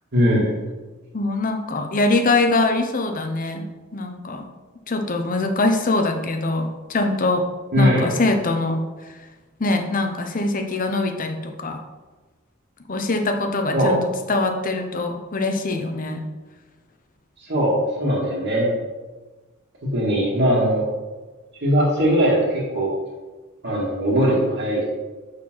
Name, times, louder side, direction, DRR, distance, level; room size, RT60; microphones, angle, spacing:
voice 1, 0.1-0.5 7.7-8.1 13.7-14.0 17.4-18.7 19.8-20.8 21.6-22.9 23.6-24.8, equal, 60° right, -8 dB, 1.9 m, -20 dB
voice 2, 1.1-4.5 4.9-7.5 7.8-8.8 9.6-11.8 12.9-14.0 14.3-16.2, left 2 dB, 40° left, 5 dB, 0.8 m, -23 dB
6.1 x 4.5 x 6.1 m, 1.2 s
head